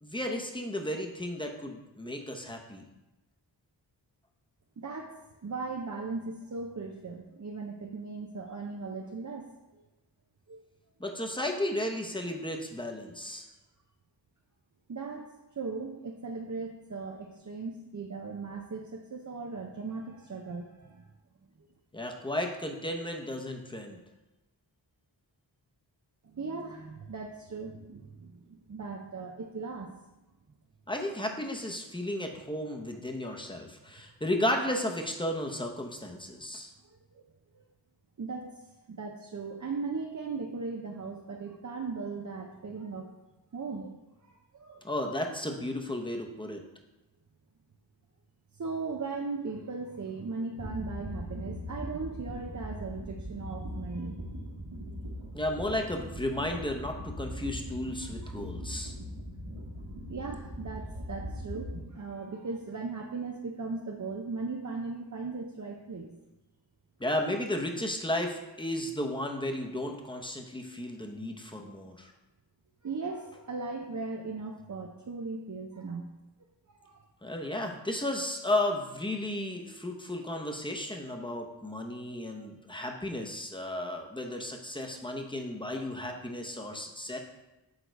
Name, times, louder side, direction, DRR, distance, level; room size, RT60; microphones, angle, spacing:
voice 1, 0.0-2.8 11.0-13.4 21.9-24.0 30.9-36.7 44.8-46.6 55.3-58.9 67.0-72.1 77.2-87.2, left 1 dB, 10° left, 2 dB, 0.9 m, -34 dB
voice 2, 4.8-9.8 10.5-10.6 14.9-15.3 15.5-21.1 26.2-29.9 33.2-33.3 36.8-37.2 37.5-37.6 38.2-38.6 38.9-43.1 43.5-43.9 44.2-44.8 48.6-54.2 58.0-58.4 60.1-66.2 72.8-76.1 76.7-77.0, right 4 dB, 40° right, 1 dB, 0.6 m, -38 dB
sound 1, 50.6-61.8, equal, 85° right, 1.5 m, -40 dB
6.5 x 3.8 x 4.6 m, 1.0 s
cardioid pair, 45°, 46 cm